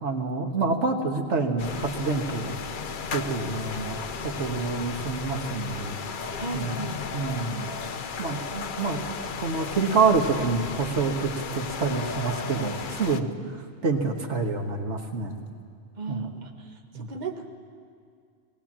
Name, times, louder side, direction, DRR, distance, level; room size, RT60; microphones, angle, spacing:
voice 1, 0.0-2.6 3.1-6.0 6.5-6.9 7.1-7.7 8.2-9.0 9.4-15.4 16.1-16.3 16.9-17.1, right 4 dB, 80° right, 4 dB, 1.6 m, -27 dB
sound 1, 1.6-13.2, left 5 dB, 50° left, 0.8 m, -35 dB
voice 2, 6.4-7.0 16.0-16.5 16.9-17.5, right 4 dB, 40° right, 3 dB, 1.3 m, -35 dB
19.5 x 18.0 x 7.4 m, 2.2 s
omnidirectional pair, 1.2 m